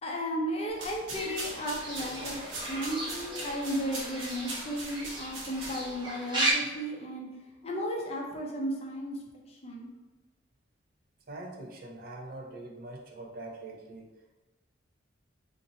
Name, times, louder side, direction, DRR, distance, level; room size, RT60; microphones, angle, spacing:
voice 1, 0.0-7.3 7.6-9.2 9.5-9.9, equal, 30° left, -1 dB, 0.5 m, -34 dB
sound 1, 0.7-6.1, right 2 dB, 75° right, 1.0 m, -41 dB
Fowl / Bird, 1.1-6.5, right 1 dB, 25° right, 0.9 m, -36 dB
voice 2, 11.3-14.1, right 2 dB, 45° right, 1 dB, 0.5 m, -43 dB
2.9 x 2.5 x 3.9 m, 1.2 s
head